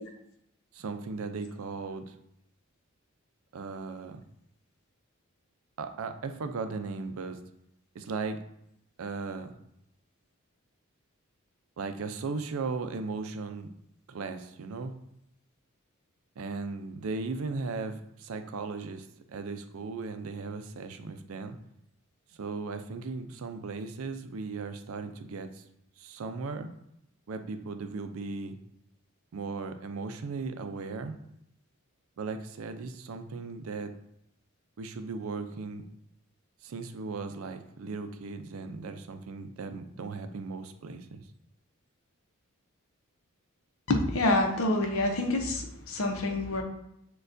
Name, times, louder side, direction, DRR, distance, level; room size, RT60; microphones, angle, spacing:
voice 1, 0.7-2.1 3.5-4.2 5.8-7.4 7.9-8.4 9.0-9.6 11.8-13.7 14.1-14.9 16.4-21.6 22.4-25.6 26.0-26.7 27.3-28.6 29.3-31.1 32.2-33.9 34.8-35.8 36.6-41.2, right 4 dB, 80° right, 8 dB, 0.4 m, -37 dB
voice 2, 43.9-46.6, left 2 dB, 80° left, 4 dB, 0.7 m, -27 dB
6.4 x 2.3 x 2.6 m, 0.78 s
head